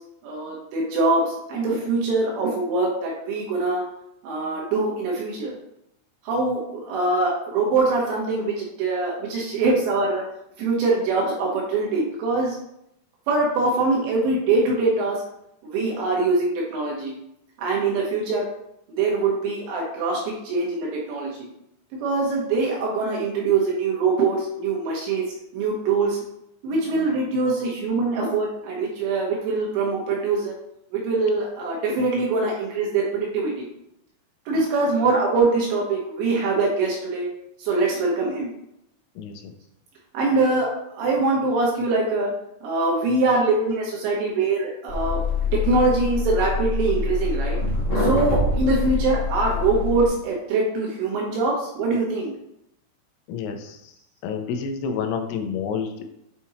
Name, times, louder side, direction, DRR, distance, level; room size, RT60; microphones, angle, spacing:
voice 1, 0.2-3.8 4.2-5.5 6.2-10.2 10.6-12.6 13.3-15.2 15.7-17.1 17.6-18.5 19.0-21.5 22.0-25.2 25.5-26.2 26.6-30.5 30.9-33.7 34.5-37.3 37.6-38.5 40.1-40.7 41.0-42.3 42.6-45.2 45.5-47.6 48.0-52.3, right 3 dB, 75° right, -3 dB, 3.0 m, -23 dB
voice 2, 39.2-39.5 53.3-53.9 54.2-56.0, left 6 dB, 80° left, 5 dB, 3.1 m, -29 dB
sound 1, 44.9-50.1, left 2 dB, 60° left, 0.9 m, -25 dB
8.4 x 4.3 x 2.8 m, 0.79 s
omnidirectional pair, 5.9 m